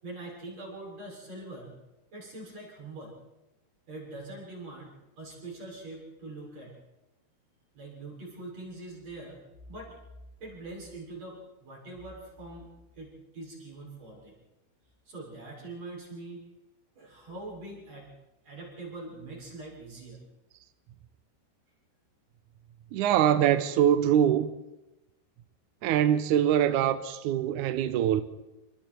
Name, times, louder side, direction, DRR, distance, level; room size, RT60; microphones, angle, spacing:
voice 1, 0.0-1.7 2.1-3.2 3.9-6.8 7.7-9.4 9.7-10.0 10.4-12.7 13.0-14.4 15.1-16.5 17.0-18.1 18.4-20.2, right 2 dB, 40° right, 7.8 m, -43 dB
voice 2, 22.9-24.5 25.8-28.2, right 10 dB, 80° right, 1.8 m, -23 dB
27.5 x 25.5 x 4.6 m
omnidirectional pair, 4.7 m